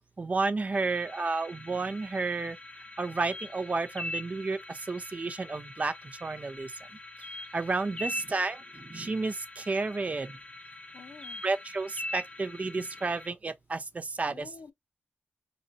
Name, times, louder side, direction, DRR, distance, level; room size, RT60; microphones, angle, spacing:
voice 1, 0.2-2.6 3.0-5.9 6.2-6.7 7.5-10.3 11.4-14.5, right 3 dB, 40° right, 0.4 m, -31 dB
sound 1, 0.7-13.3, left 2 dB, 30° left, 0.8 m, -43 dB
voice 2, 7.9-8.2 10.9-11.4 14.3-14.7, left 5 dB, 80° left, 0.6 m, -50 dB
4.2 x 2.6 x 2.6 m
cardioid pair, 60°, 4 cm